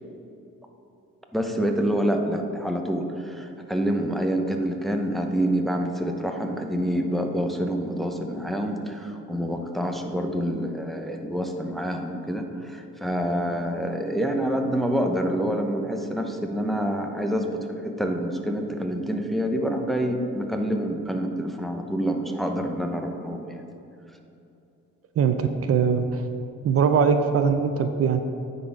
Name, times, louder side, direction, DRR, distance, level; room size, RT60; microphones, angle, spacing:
voice 1, 1.3-23.6, equal, ahead, 3 dB, 0.7 m, -27 dB
voice 2, 25.2-26.2 26.6-28.2, right 6 dB, 50° right, 8 dB, 0.5 m, -21 dB
9.1 x 4.1 x 5.0 m, 2.7 s
cardioid pair, 90°, 30 cm